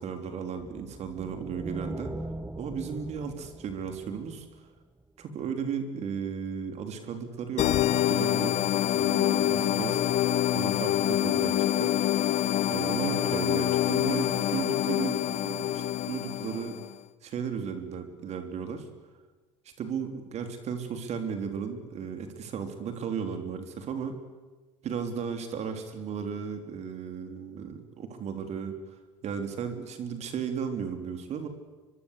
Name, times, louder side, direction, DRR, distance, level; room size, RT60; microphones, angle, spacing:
voice 1, 0.0-2.3 2.5-4.5 5.2-7.8 8.1-10.0 10.5-11.9 12.7-16.8 17.2-18.9 19.8-24.2 24.8-28.8 29.2-31.5, right 6 dB, 45° right, 7 dB, 3.5 m, -35 dB
sound 1, 0.6-5.0, right 1 dB, 10° right, 1.3 m, -41 dB
sound 2, 7.6-16.9, left 12 dB, 50° left, 1.0 m, -26 dB
24.0 x 23.5 x 8.4 m, 1.3 s
hypercardioid pair, 75°, 15 cm